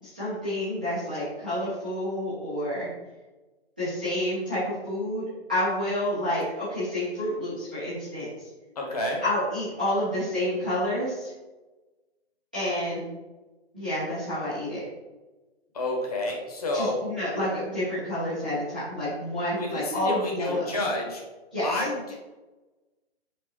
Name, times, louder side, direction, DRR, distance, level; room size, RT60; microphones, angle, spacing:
voice 1, 0.0-2.9 3.8-5.2 5.5-8.3 9.2-11.3 12.5-13.1 13.7-14.8 16.7-20.7 21.5-21.8, left 1 dB, 10° right, -16 dB, 0.5 m, -29 dB
voice 2, 8.8-9.2 15.7-17.0 19.5-21.2 21.6-22.2, left 2 dB, 35° left, -1 dB, 1.0 m, -29 dB
4.6 x 3.7 x 2.9 m, 1.2 s
hypercardioid pair, 170°, 32 cm